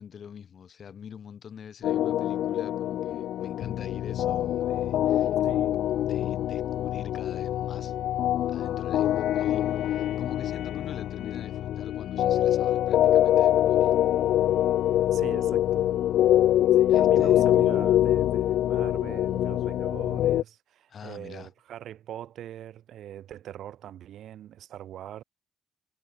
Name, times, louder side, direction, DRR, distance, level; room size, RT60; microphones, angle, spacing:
voice 1, 0.0-5.4 5.7-5.8 6.0-7.9 8.5-13.9 16.9-17.4 20.9-21.5, left 7 dB, 40° left, 5.8 m, -45 dB
sound 1, 1.8-20.4, left 12 dB, 70° left, 1.2 m, -24 dB
voice 2, 5.4-5.8 15.1-15.9 16.7-25.2, right 11 dB, 60° right, 7.6 m, -42 dB
cardioid pair, 140°, 0 cm